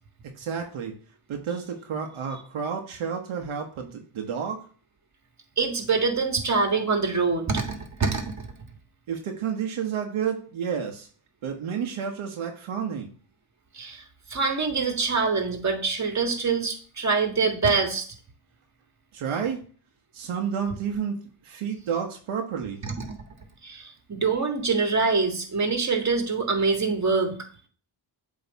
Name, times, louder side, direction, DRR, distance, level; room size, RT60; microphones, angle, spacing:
voice 1, 0.2-0.9 1.3-4.6 9.1-11.1 11.4-13.1 19.1-19.6 20.1-22.8, right 7 dB, 75° right, 3 dB, 1.1 m, -30 dB
voice 2, 5.6-8.5 13.7-14.0 14.3-18.1 22.8-22.9 23.6-27.4, right 4 dB, 35° right, 4 dB, 1.7 m, -25 dB
8.0 x 3.1 x 4.0 m, 0.42 s
cardioid pair, 80°, 49 cm